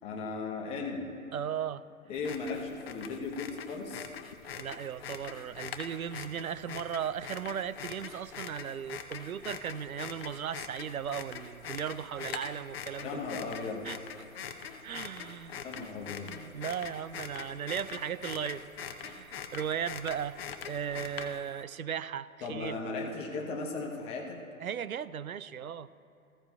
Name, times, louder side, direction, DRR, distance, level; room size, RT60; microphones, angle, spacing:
voice 1, 0.0-1.1 2.1-4.1 13.0-13.9 15.6-16.3 22.4-24.4, left 4 dB, 15° left, 0 dB, 1.0 m, -36 dB
voice 2, 1.3-1.8 4.5-13.2 13.8-14.0 14.8-15.6 16.2-18.7 19.0-20.4 20.6-22.8 24.6-25.9, right 8 dB, 70° right, 16 dB, 0.6 m, -36 dB
sound 1, 2.2-21.6, left 7 dB, 40° left, 0.8 m, -43 dB
18.5 x 15.5 x 2.4 m, 2.7 s
figure-of-eight pair, 130°, 44 cm